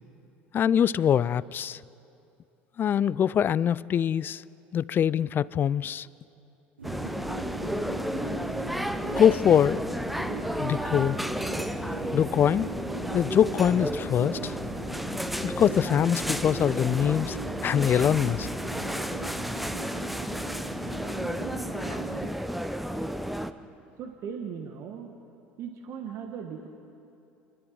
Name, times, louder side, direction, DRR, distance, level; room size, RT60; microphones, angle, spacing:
voice 1, 0.5-1.8 2.8-4.4 4.7-6.1 9.1-10.0 10.6-11.2 12.1-12.7 13.1-14.5 15.4-17.4 17.6-18.5, left 9 dB, 35° left, 21 dB, 0.4 m, -23 dB
sound 1, 6.8-23.5, equal, ahead, 0.8 m, -32 dB
sound 2, 6.8-22.3, right 5 dB, 85° right, 0.9 m, -42 dB
voice 2, 24.0-25.1 25.6-26.7, right 7 dB, 50° right, 4 dB, 1.5 m, -38 dB
28.0 x 12.5 x 7.7 m, 2.7 s
figure-of-eight pair, 65°, 6 cm